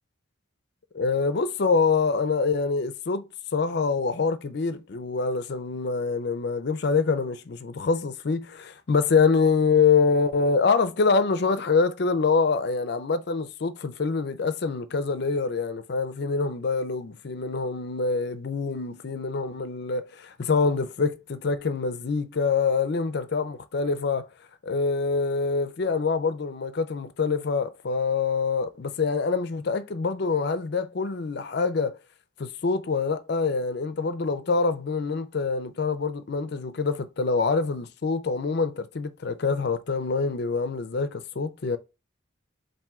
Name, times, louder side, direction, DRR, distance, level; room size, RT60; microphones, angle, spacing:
voice 1, 0.9-3.3 3.5-24.3 24.6-32.0 32.4-41.8, left 4 dB, 55° left, 0.5 m, -25 dB
4.3 x 2.6 x 3.5 m
head